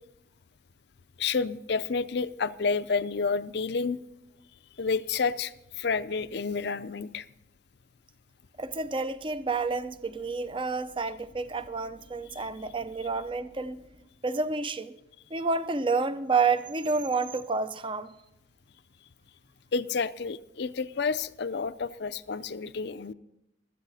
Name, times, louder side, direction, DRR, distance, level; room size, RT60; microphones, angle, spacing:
voice 1, 1.2-4.0 4.8-7.2 12.3-12.4 19.7-23.1, left 5 dB, 60° left, 0.5 m, -30 dB
sound 1, 8.5-14.0, equal, 80° right, 3.5 m, -57 dB
voice 2, 8.6-13.8 14.2-14.9 15.3-18.1, right 4 dB, 25° right, 0.6 m, -29 dB
16.0 x 13.5 x 4.2 m
head